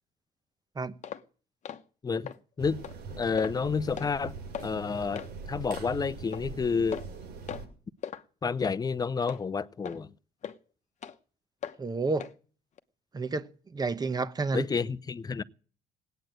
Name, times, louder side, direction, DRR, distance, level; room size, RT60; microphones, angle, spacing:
sound 1, 1.0-1.2 1.6-1.8 2.3-2.4 2.8-3.0 3.4-3.6 4.0-4.1 4.5-4.7 5.2-5.3 5.7-5.9 6.3-6.4 6.9-7.2 7.5-7.7 8.0-8.2 8.6-8.8 9.3-9.4 9.8-10.0 10.4-10.6 11.0-11.2 11.6-11.8 12.2-12.3 12.8-12.9, left 8 dB, 45° left, 1.0 m, -38 dB
sound 2, 2.6-7.7, right 4 dB, 80° right, 5.9 m, -42 dB
voice 1, 3.2-4.3 4.6-7.0 8.4-10.1 14.5-15.4, left 5 dB, 20° left, 0.7 m, -30 dB
voice 2, 11.8-12.3 13.1-14.7, right 3 dB, 25° right, 1.0 m, -30 dB
18.5 x 9.2 x 8.0 m
cardioid pair, 110°, 17 cm